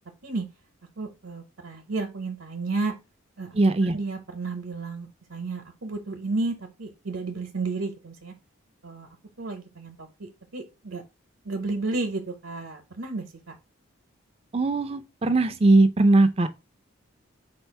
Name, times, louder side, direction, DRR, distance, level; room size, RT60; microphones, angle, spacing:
voice 1, 1.0-2.9 3.4-8.3 8.8-9.1 9.4-11.0 11.4-13.6, right 3 dB, 75° right, 0.8 m, -32 dB
voice 2, 3.5-4.0 14.5-16.5, right 2 dB, 30° right, 0.4 m, -20 dB
4.4 x 2.4 x 4.5 m
head